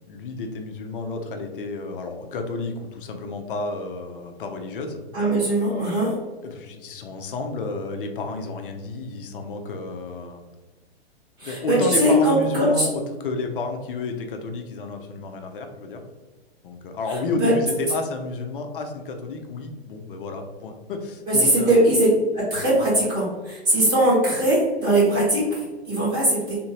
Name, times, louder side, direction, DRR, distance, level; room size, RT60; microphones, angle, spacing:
voice 1, 0.1-5.0 6.4-10.4 11.4-16.0 16.6-21.8, left 3 dB, 55° left, 5 dB, 0.7 m, -31 dB
voice 2, 5.1-6.1 11.4-12.9 17.4-17.5 21.3-22.1 22.3-26.6, right 1 dB, 25° right, -7 dB, 1.3 m, -20 dB
3.5 x 2.7 x 3.0 m, 1.3 s
figure-of-eight pair, 110°, 32 cm